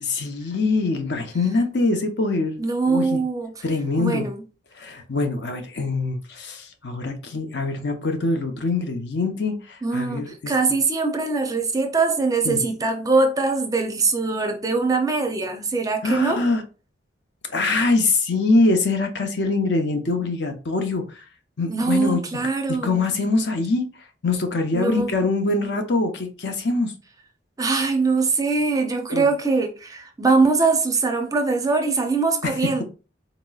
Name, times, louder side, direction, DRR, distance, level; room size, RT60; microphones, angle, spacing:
voice 1, 0.0-2.6 2.9-3.2 3.6-4.3 4.8-10.5 12.4-12.6 16.0-16.6 17.5-21.0 21.6-23.8 24.2-26.9 29.1-29.3, left 3 dB, 65° left, 0.7 m, -23 dB
voice 2, 2.6-3.5 4.0-4.4 9.8-16.4 21.7-23.0 24.7-25.1 27.6-32.8, right 3 dB, 20° right, 0.5 m, -22 dB
4.0 x 2.9 x 2.3 m
head